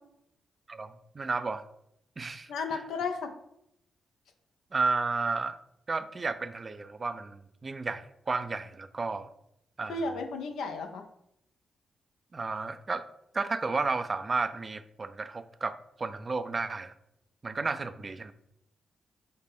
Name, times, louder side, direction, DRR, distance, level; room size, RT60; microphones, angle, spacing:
voice 1, 0.7-1.6 2.2-2.8 4.7-5.6 5.9-9.3 9.8-10.0 12.3-13.0 13.3-16.9 17.4-18.3, right 3 dB, 40° right, 12 dB, 0.3 m, -32 dB
voice 2, 2.5-3.3 9.8-11.1, left 3 dB, 75° left, 5 dB, 0.5 m, -33 dB
5.2 x 2.1 x 3.5 m, 0.78 s
hypercardioid pair, 45°, 0 cm